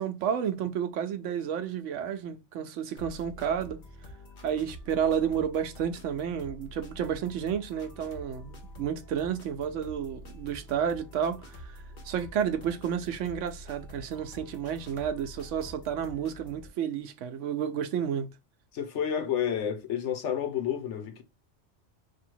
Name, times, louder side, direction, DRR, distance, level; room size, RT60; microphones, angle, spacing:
voice 1, 0.0-3.8 4.4-18.3, right 8 dB, 80° right, 1.0 m, -31 dB
sound 1, 3.0-16.7, equal, 45° left, 1.0 m, -47 dB
voice 2, 18.7-21.2, left 9 dB, 75° left, 1.1 m, -30 dB
3.0 x 2.7 x 4.4 m
omnidirectional pair, 1.3 m